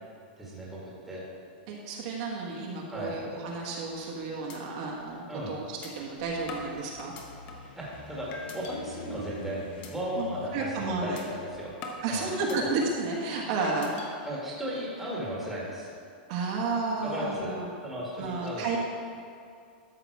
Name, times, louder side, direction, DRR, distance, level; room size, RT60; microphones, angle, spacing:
voice 1, 0.4-1.2 2.9-3.1 5.3-5.5 7.7-9.6 9.9-11.7 12.1-12.3 14.2-15.9 17.0-18.8, equal, 5° right, -6 dB, 1.8 m, -35 dB
voice 2, 1.7-7.1 10.2-11.2 12.0-14.1 16.3-17.7 18.1-18.8, right 3 dB, 45° right, -3 dB, 1.4 m, -32 dB
sound 1, 3.9-4.1 4.5-4.6 5.0-5.1 5.8-5.9 6.5-7.8 8.3-8.7 9.2-9.4 9.8-9.9 10.3-10.5 11.2-11.3 11.8-13.1 13.6-14.1, left 3 dB, 30° left, 0.9 m, -43 dB
sound 2, 6.1-13.2, left 2 dB, 85° left, 1.9 m, -47 dB
12.5 x 5.9 x 4.7 m, 2.3 s
supercardioid pair, 170°, 5 cm